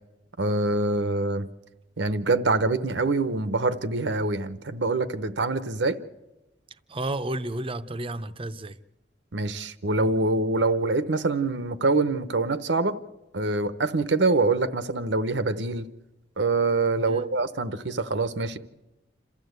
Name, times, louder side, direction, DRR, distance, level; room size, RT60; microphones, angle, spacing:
voice 1, 0.4-1.5 2.0-6.0 9.3-13.0 13.3-15.9 16.4-18.6, right 3 dB, 80° right, 0.9 m, -25 dB
voice 2, 6.9-8.8 17.0-17.3, right 1 dB, 30° right, 0.7 m, -32 dB
27.5 x 14.0 x 8.1 m
head